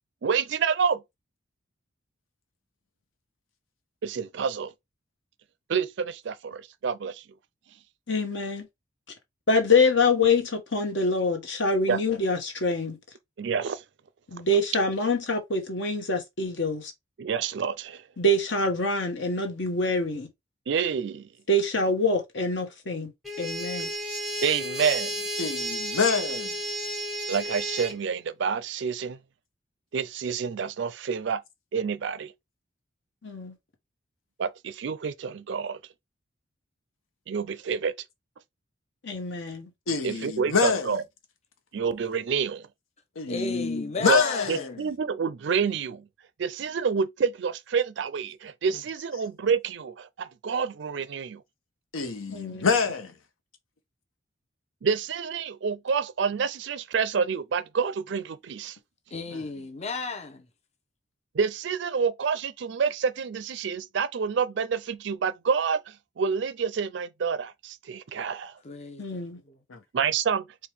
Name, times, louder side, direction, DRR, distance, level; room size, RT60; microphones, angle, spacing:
voice 1, 0.2-1.0 4.0-4.7 5.7-7.2 11.9-12.0 13.4-13.8 17.2-18.0 20.7-21.3 24.4-25.2 27.3-29.2 29.9-31.4 31.7-32.3 34.4-35.8 37.3-37.9 40.0-41.0 41.7-42.7 44.1-44.2 44.5-46.1 46.4-51.4 54.8-58.8 61.3-68.6 69.9-70.4, right 6 dB, 65° right, 0.4 m, -28 dB
voice 2, 8.1-8.7 9.5-13.0 14.3-16.9 18.2-20.3 21.5-23.1 23.4-23.9 33.2-33.5 39.0-39.7 52.3-52.7 69.0-69.4, left 2 dB, 65° left, 1.1 m, -25 dB
sound 1, 23.2-28.0, equal, ahead, 0.7 m, -32 dB
voice 3, 25.4-26.6 39.9-41.0 43.2-44.8 51.9-53.1 59.3-59.4 69.7-69.8, left 5 dB, 90° left, 0.8 m, -26 dB
voice 4, 43.3-44.8 59.1-60.5 68.6-69.0 69.5-69.6, left 3 dB, 35° left, 0.6 m, -34 dB
4.6 x 2.2 x 3.4 m
head